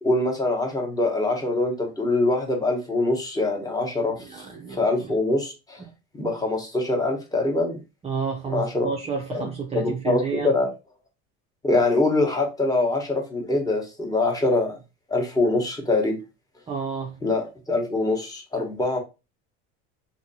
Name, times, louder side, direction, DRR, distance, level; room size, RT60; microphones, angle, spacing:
voice 1, 0.0-4.2 4.7-5.8 6.1-7.8 8.5-8.9 9.3-9.5 9.7-10.7 11.6-14.7 15.1-16.2 17.2-19.0, left 2 dB, 10° left, 1.0 m, -24 dB
voice 2, 4.2-4.8 8.0-10.5 16.7-17.1, right 5 dB, 20° right, 0.5 m, -30 dB
2.8 x 2.6 x 2.7 m
supercardioid pair, 110°, 33 cm